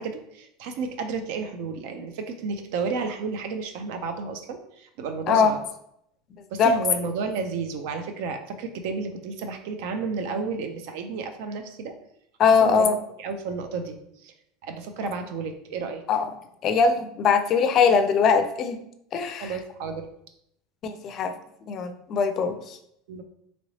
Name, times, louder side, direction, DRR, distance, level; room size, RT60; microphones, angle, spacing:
voice 1, 0.0-5.6 6.5-11.9 12.4-12.9 13.2-14.3 14.6-16.0 19.4-20.1 23.1-23.2, right 4 dB, 70° right, 7 dB, 0.5 m, -32 dB
voice 2, 12.4-13.0 16.1-16.3 16.6-18.8 19.1-19.5 20.8-21.3 21.7-22.8, left 5 dB, 40° left, 8 dB, 0.4 m, -21 dB
3.0 x 2.9 x 2.8 m, 0.76 s
supercardioid pair, 130°, 0 cm